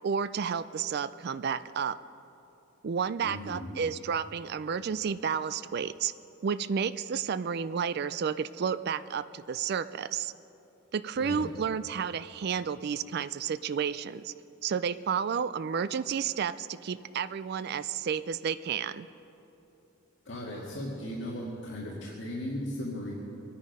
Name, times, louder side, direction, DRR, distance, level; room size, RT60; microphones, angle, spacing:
voice 1, 0.0-2.0 2.8-6.1 6.4-10.3 10.9-14.3 14.6-19.1, right 7 dB, 55° right, 14 dB, 0.4 m, -31 dB
voice 2, 3.2-3.8 11.2-11.5 20.3-23.1, left 1 dB, 65° left, -5 dB, 2.2 m, -37 dB
23.5 x 9.7 x 5.5 m, 3.0 s
head